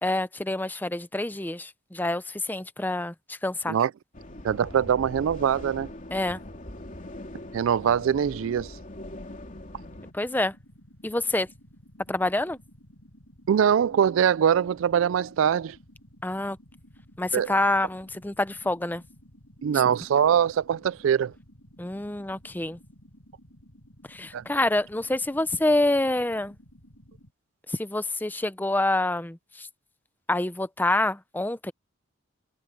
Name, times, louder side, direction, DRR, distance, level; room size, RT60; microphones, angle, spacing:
voice 1, 0.0-3.8 6.1-6.4 10.1-10.5 11.0-11.5 12.1-12.6 16.2-16.6 17.2-19.0 21.8-22.8 24.1-26.6 27.7-29.7 30.3-31.7, left 2 dB, 10° left, 0.6 m, -27 dB
sound 1, 4.1-10.1, left 1 dB, 40° left, 3.1 m, -41 dB
voice 2, 4.4-5.9 7.5-8.7 13.5-15.8 17.3-17.6 19.6-21.3 24.3-24.4, right 8 dB, 75° right, 0.3 m, -23 dB
sound 2, 9.8-27.3, equal, 65° left, 7.9 m, -54 dB
head